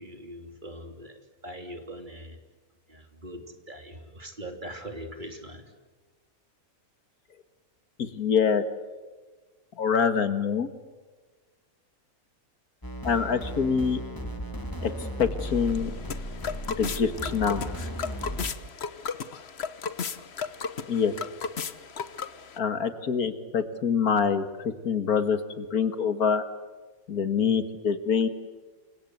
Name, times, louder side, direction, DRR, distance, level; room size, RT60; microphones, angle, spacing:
voice 1, 0.0-2.4 2.9-5.7, equal, 35° right, 5 dB, 3.2 m, -42 dB
voice 2, 8.0-8.6 9.8-10.7 13.0-14.0 14.8-15.9 16.7-17.7 20.9-21.1 22.6-26.4 27.1-28.3, left 6 dB, 90° left, 10 dB, 2.2 m, -25 dB
sound 1, 12.8-18.5, equal, 15° left, 3.3 m, -35 dB
sound 2, 15.5-22.6, left 6 dB, 50° left, 1.3 m, -35 dB
29.0 x 24.5 x 8.1 m, 1.3 s
omnidirectional pair, 1.5 m